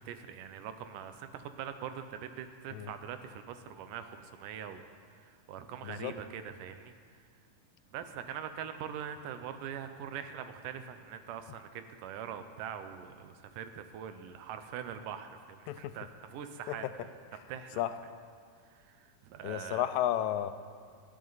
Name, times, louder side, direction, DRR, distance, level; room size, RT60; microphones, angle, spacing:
voice 1, 0.0-4.8 5.1-6.9 7.9-16.9 17.5-17.8 18.8-19.8, right 8 dB, 80° right, 9 dB, 2.2 m, -43 dB
voice 2, 5.8-6.1 15.7-15.9 16.7-16.9 17.3-17.4 17.8-18.0 19.4-20.5, left 12 dB, 85° left, 11 dB, 2.3 m, -33 dB
18.0 x 12.5 x 4.0 m, 2.1 s
omnidirectional pair, 3.9 m